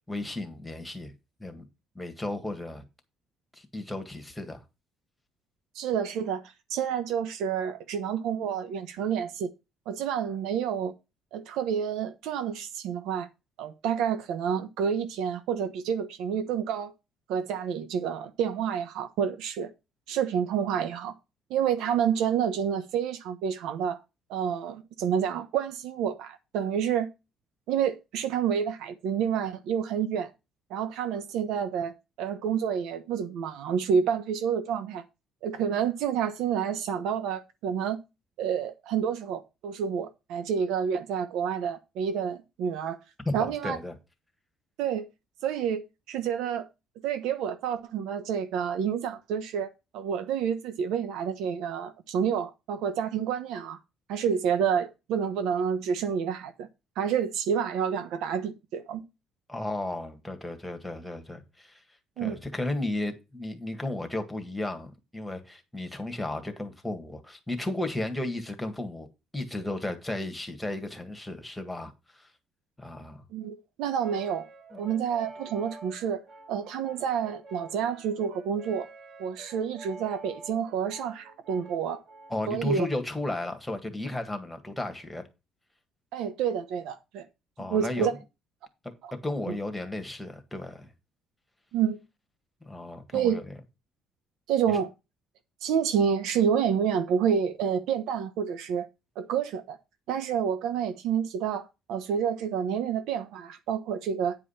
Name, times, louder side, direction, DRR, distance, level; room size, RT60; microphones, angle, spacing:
voice 1, 0.1-1.1 1.4-1.7 2.0-2.8 3.5-4.6 43.3-44.0 59.5-61.8 62.2-69.1 69.3-71.9 72.2-72.3 72.8-73.2 74.7-74.8 82.3-85.2 87.6-88.1 89.1-90.9 92.6-93.4 94.7-94.8, left 1 dB, 5° left, 1.8 m, -34 dB
voice 2, 5.7-6.4 6.7-9.5 9.9-10.9 11.3-13.3 13.6-16.9 17.3-19.7 20.1-21.1 21.5-24.0 24.3-27.1 27.7-30.3 30.7-35.0 35.4-38.0 38.4-43.0 43.3-43.8 44.8-45.1 45.4-46.7 47.0-49.7 49.9-53.8 54.1-56.7 57.0-59.0 62.2-62.4 73.3-74.5 74.8-76.2 76.5-78.9 79.2-82.0 82.5-82.9 86.1-87.2 87.7-88.1 89.0-89.1 91.7-92.0 93.1-93.4 94.5-94.9 95.6-98.9 99.2-99.8 100.1-104.4, right 8 dB, 85° right, 1.1 m, -29 dB
Brass instrument, 74.0-82.5, right 2 dB, 55° right, 3.6 m, -48 dB
9.4 x 5.0 x 5.7 m
cardioid pair, 125°, 0 cm